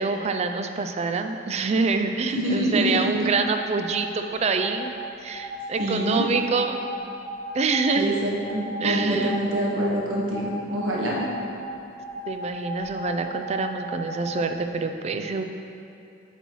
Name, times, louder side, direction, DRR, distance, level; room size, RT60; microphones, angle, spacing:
voice 1, 0.0-4.9 5.2-6.8 7.5-8.1 8.8-9.4 12.3-15.4, right 4 dB, 30° right, 6 dB, 0.3 m, -26 dB
voice 2, 2.3-3.1 5.8-6.2 8.0-11.2, equal, 75° right, -4 dB, 1.2 m, -25 dB
sound 1, 3.5-4.1 4.5-4.9 5.3-8.0 8.4-9.8 10.3-11.5 12.0-14.4, left 1 dB, 45° left, 1.5 m, -36 dB
8.1 x 3.1 x 5.4 m, 2.6 s
head